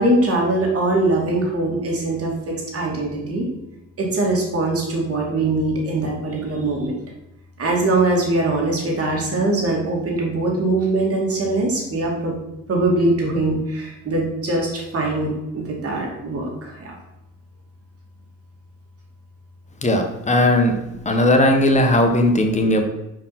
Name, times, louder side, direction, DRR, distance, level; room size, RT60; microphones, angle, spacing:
voice 1, 0.0-3.5 4.0-7.0 7.6-12.4 12.7-16.9, right 2 dB, 45° right, -2 dB, 2.6 m, -22 dB
voice 2, 19.8-20.7 21.0-22.8, left 1 dB, 20° left, 4 dB, 1.2 m, -17 dB
5.3 x 4.9 x 5.9 m, 0.91 s
cardioid pair, 105°, 33 cm